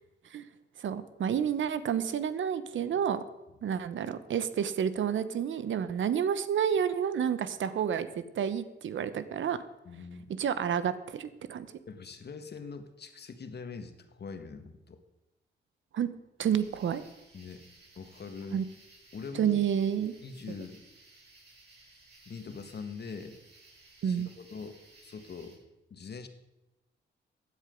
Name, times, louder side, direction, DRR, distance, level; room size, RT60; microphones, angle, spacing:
voice 1, 0.8-3.2 3.6-9.6 10.4-11.7 15.9-16.1 16.4-17.0 18.5-18.6 19.4-20.1 24.0-24.3, right 8 dB, 80° right, 13 dB, 1.0 m, -30 dB
voice 2, 9.8-10.3 11.9-15.0 17.3-17.6 17.9-18.6 19.1-19.6 20.2-20.8 22.2-23.4 24.0-25.6 25.9-26.3, left 5 dB, 60° left, 8 dB, 1.5 m, -43 dB
sound 1, 16.4-25.6, right 2 dB, 60° right, 6.1 m, -58 dB
15.5 x 10.0 x 5.2 m, 0.99 s
cardioid pair, 70°, 20 cm